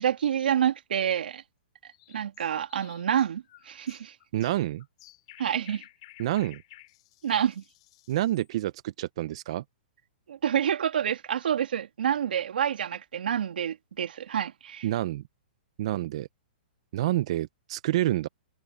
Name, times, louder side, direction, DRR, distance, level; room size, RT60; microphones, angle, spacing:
voice 1, 0.0-1.4 2.1-4.1 5.4-5.8 7.2-7.6 10.3-14.9, right 9 dB, 70° right, 2.5 m, -28 dB
sound 1, 1.9-8.5, left 17 dB, 35° left, 4.6 m, -54 dB
voice 2, 4.3-4.8 6.2-6.6 8.1-9.6 14.8-15.2 15.8-16.3 16.9-18.3, right 14 dB, 35° right, 0.4 m, -28 dB
hypercardioid pair, 175°, 5 cm